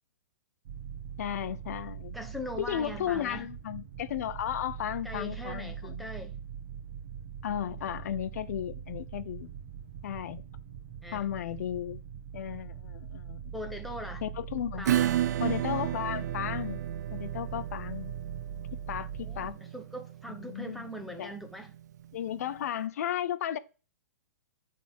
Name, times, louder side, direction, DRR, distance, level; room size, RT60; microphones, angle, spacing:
sound 1, 0.6-19.5, right 8 dB, 45° right, 1.4 m, -42 dB
voice 1, 1.2-2.2 2.6-6.1 7.4-9.5 10.0-10.4 11.1-12.0 12.3-13.6 14.2-14.9 15.4-16.8 17.1-18.1 18.9-19.5 20.3-20.9 21.2-21.3 22.1-23.6, left 10 dB, 60° left, 0.7 m, -34 dB
voice 2, 2.1-3.5 5.0-6.4 11.0-11.3 13.5-14.2 14.8-15.2 19.2-21.7, equal, ahead, 0.8 m, -41 dB
Acoustic guitar / Strum, 14.8-22.1, right 12 dB, 70° right, 0.4 m, -33 dB
9.2 x 3.6 x 4.4 m
hypercardioid pair, 160°, 10 cm